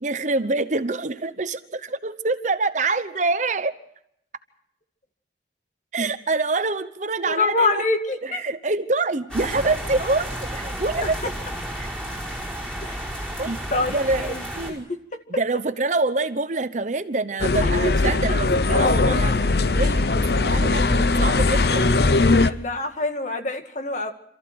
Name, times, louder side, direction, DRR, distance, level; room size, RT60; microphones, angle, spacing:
voice 1, 0.0-3.7 5.9-7.8 8.2-10.3 10.5-11.1 11.8-11.9 13.4-14.9 15.4-21.8, right 3 dB, 45° right, 11 dB, 0.9 m, -26 dB
voice 2, 7.3-8.4 12.8-13.2 13.7-14.8 17.6-18.2 22.5-24.1, left 2 dB, 45° left, 6 dB, 2.0 m, -26 dB
sound 1, 9.3-14.7, equal, 5° left, 4.8 m, -32 dB
sound 2, 17.4-22.5, left 3 dB, 60° left, 0.8 m, -19 dB
27.5 x 14.5 x 7.8 m, 0.75 s
head